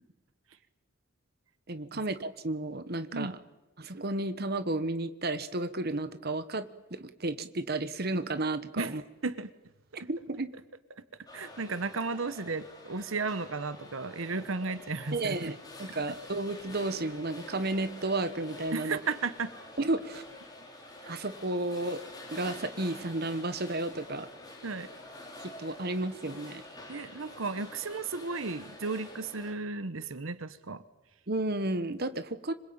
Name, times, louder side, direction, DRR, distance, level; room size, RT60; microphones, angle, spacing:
voice 1, 1.7-3.3 3.8-9.0 10.1-10.5 15.1-19.0 19.8-20.2 21.1-22.0 22.3-24.3 25.4-26.6 31.3-32.5, right 2 dB, 50° right, 11 dB, 1.3 m, -32 dB
sound 1, 11.3-29.5, left 1 dB, 20° left, 4.8 m, -48 dB
voice 2, 11.3-15.5 18.7-19.5 21.0-21.1 24.6-24.9 26.9-30.8, right 4 dB, 75° right, 13 dB, 1.1 m, -34 dB
26.5 x 21.5 x 8.8 m, 1.0 s
head